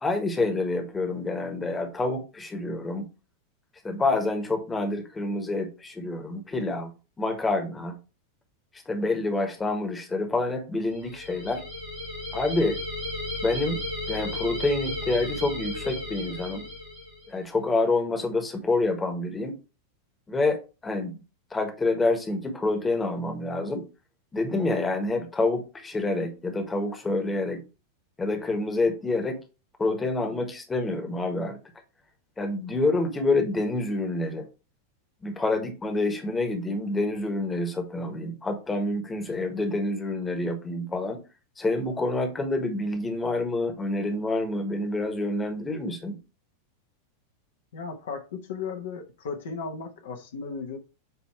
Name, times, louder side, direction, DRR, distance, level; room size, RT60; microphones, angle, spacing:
voice 1, 0.0-3.1 3.8-6.9 7.2-8.0 8.9-11.6 12.3-12.8 13.4-13.8 14.1-16.7 17.3-19.6 20.3-21.2 21.5-23.8 24.3-27.6 28.2-29.4 29.8-31.6 32.4-34.4 35.2-41.2 41.6-46.2, left 2 dB, 15° left, 1.4 m, -27 dB
sound 1, 10.9-17.3, left 2 dB, 55° right, 2.8 m, -34 dB
voice 2, 47.7-50.8, left 5 dB, 60° left, 1.1 m, -35 dB
8.0 x 3.0 x 4.5 m
figure-of-eight pair, 90°, 0 cm